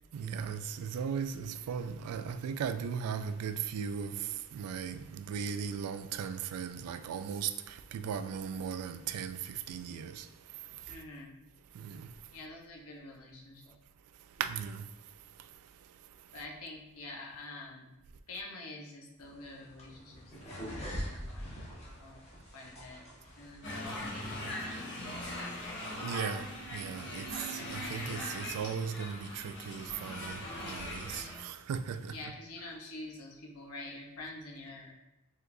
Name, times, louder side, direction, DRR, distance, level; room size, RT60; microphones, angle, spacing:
voice 1, 0.1-10.3 11.8-12.1 14.4-14.8 25.9-32.1, right 7 dB, 85° right, 0.3 m, -37 dB
voice 2, 10.9-11.3 12.3-13.8 16.3-18.0 18.3-22.2 22.5-23.0 23.4-25.0 32.1-34.9, left 2 dB, 75° left, 0.9 m, -47 dB
sound 1, 19.2-24.4, equal, 30° left, 1.2 m, -44 dB
sound 2, 23.6-31.4, left 1 dB, 55° left, 1.3 m, -40 dB
4.7 x 3.8 x 2.6 m
head